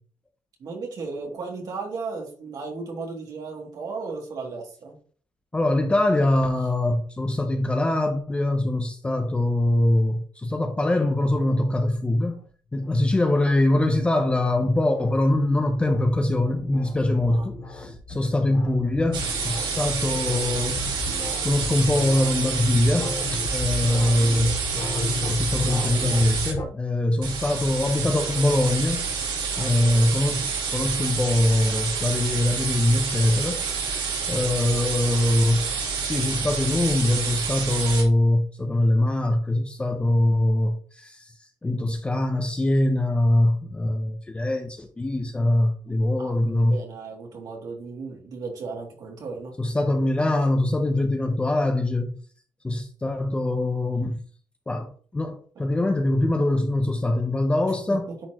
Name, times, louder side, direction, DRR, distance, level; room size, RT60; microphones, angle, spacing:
voice 1, 0.6-5.0 17.2-17.5 20.0-20.3 29.6-30.5 46.2-49.5, right 4 dB, 50° right, 2.5 m, -35 dB
voice 2, 5.5-12.4 12.7-24.6 25.3-29.0 29.6-41.3 41.6-46.8 49.6-52.2 52.6-54.2 54.7-58.1, left 1 dB, 15° left, 0.6 m, -23 dB
sound 1, 12.7-26.7, left 3 dB, 45° left, 2.8 m, -34 dB
sound 2, 19.1-26.5 27.2-38.0, right 5 dB, 90° right, 3.0 m, -28 dB
10.0 x 4.3 x 2.9 m
cardioid pair, 175°, 8 cm